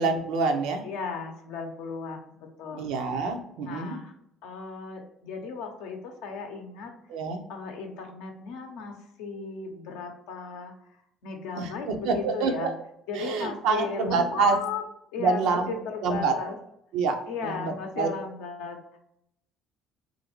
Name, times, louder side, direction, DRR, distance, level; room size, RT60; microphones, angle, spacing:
voice 1, 0.0-0.8 2.7-4.0 7.1-7.4 11.6-12.7 13.1-14.6 15.2-15.7 16.0-16.3 16.9-18.1, right 4 dB, 75° right, 5 dB, 0.5 m, -27 dB
voice 2, 0.8-3.2 3.6-4.1 4.4-6.9 7.5-10.7 11.2-12.7 13.1-14.8 15.1-16.6 17.3-19.0, left 5 dB, 80° left, 3 dB, 0.6 m, -36 dB
3.1 x 2.5 x 2.9 m, 0.78 s
hypercardioid pair, 65°, 0 cm